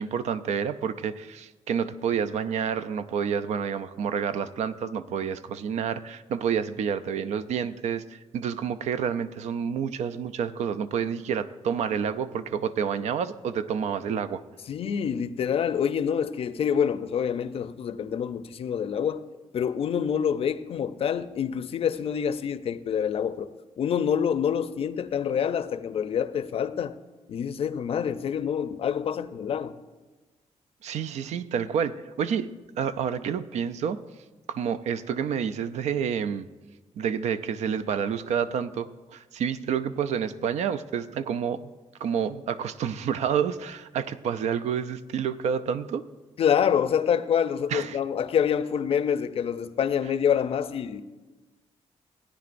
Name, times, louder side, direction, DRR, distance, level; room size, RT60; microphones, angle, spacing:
voice 1, 0.0-14.4 30.8-32.5 32.8-34.0 34.5-36.5 37.0-41.7 42.0-46.0 47.7-48.0, right 7 dB, 85° right, 0.5 m, -29 dB
voice 2, 14.7-19.3 19.5-23.5 23.8-27.0 27.3-29.8 46.4-51.0, left 8 dB, 60° left, 0.5 m, -26 dB
16.5 x 9.8 x 2.5 m
cardioid pair, 120°, 11 cm